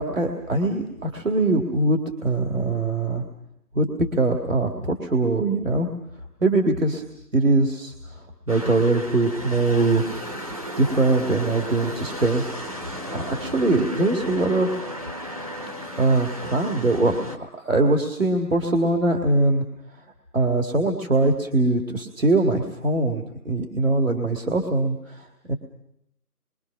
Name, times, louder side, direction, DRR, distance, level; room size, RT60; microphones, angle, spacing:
voice 1, 0.0-3.2 3.7-5.9 6.4-7.0 7.3-10.1 10.8-12.7 13.1-14.7 16.0-19.6 20.3-25.5, right 2 dB, 55° right, 3 dB, 2.3 m, -22 dB
sound 1, 8.5-17.4, equal, 25° right, 1.3 m, -34 dB
27.0 x 24.0 x 6.0 m, 0.78 s
figure-of-eight pair, 170°, 46 cm